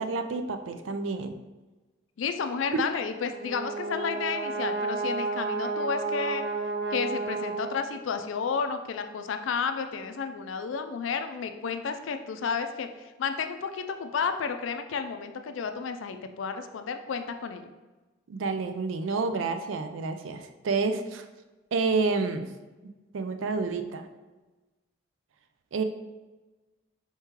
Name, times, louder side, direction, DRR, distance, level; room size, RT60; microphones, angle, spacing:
voice 1, 0.0-1.4 2.7-2.9 18.3-21.3 21.7-22.5 22.8-24.1 25.7-25.8, right 4 dB, 90° right, 8 dB, 0.4 m, -29 dB
voice 2, 2.2-6.4 6.9-17.7, left 5 dB, 85° left, 8 dB, 0.4 m, -32 dB
Brass instrument, 3.1-8.2, right 3 dB, 70° right, 1.2 m, -32 dB
4.5 x 3.7 x 2.8 m, 1.2 s
head